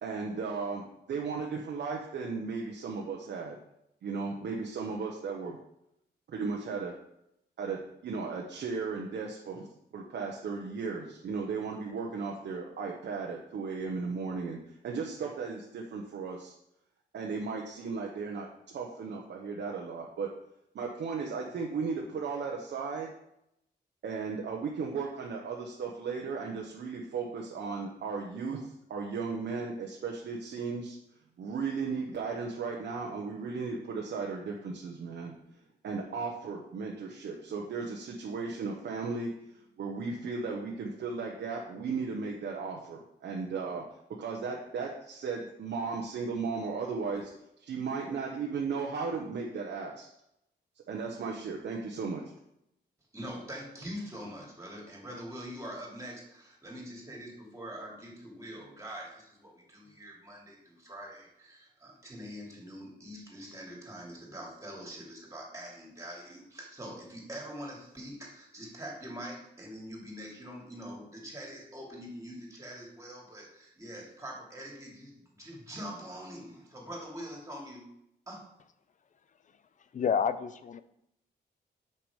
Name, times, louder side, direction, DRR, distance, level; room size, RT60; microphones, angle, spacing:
voice 1, 0.0-3.6 4.0-5.6 6.3-6.9 7.6-9.7 9.9-16.5 17.1-18.5 18.7-20.3 20.7-23.1 24.0-31.0 31.4-35.3 35.8-39.3 39.5-43.8 44.2-47.3 47.6-50.1 50.9-52.2, right 4 dB, 70° right, -1 dB, 1.0 m, -35 dB
voice 2, 53.1-75.1 75.4-77.9 78.3-78.4, equal, 15° right, -2 dB, 2.7 m, -44 dB
voice 3, 79.9-80.8, left 6 dB, 45° left, 13 dB, 0.5 m, -29 dB
6.2 x 6.0 x 5.0 m, 0.81 s
cardioid pair, 115°, 19 cm